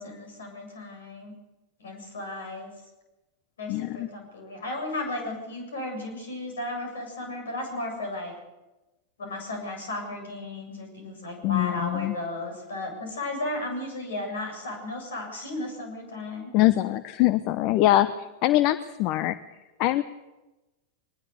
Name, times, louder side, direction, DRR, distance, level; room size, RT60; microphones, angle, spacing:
voice 1, 0.0-1.3 1.8-2.7 3.6-8.4 9.2-16.5, left 2 dB, 65° left, 4 dB, 7.7 m, -34 dB
voice 2, 3.7-4.1 11.4-12.1 16.5-18.1 18.4-19.3 19.8-20.0, left 15 dB, 45° left, 15 dB, 0.8 m, -23 dB
23.0 x 20.0 x 6.9 m, 1.0 s
figure-of-eight pair, 90°, 0 cm